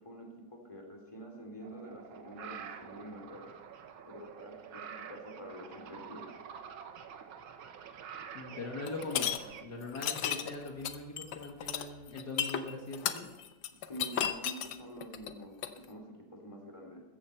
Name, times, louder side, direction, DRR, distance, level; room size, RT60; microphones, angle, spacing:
voice 1, 0.0-3.5 4.0-6.4 13.8-17.0, right 1 dB, 15° left, 1 dB, 3.2 m, -47 dB
sound 1, 1.6-9.6, right 7 dB, 90° right, 1.9 m, -47 dB
voice 2, 8.3-13.3, left 2 dB, 55° left, 0 dB, 2.2 m, -41 dB
sound 2, 8.9-9.4 9.9-15.8, left 10 dB, 70° left, 1.5 m, -34 dB
15.0 x 14.0 x 4.5 m, 1.2 s
omnidirectional pair, 2.2 m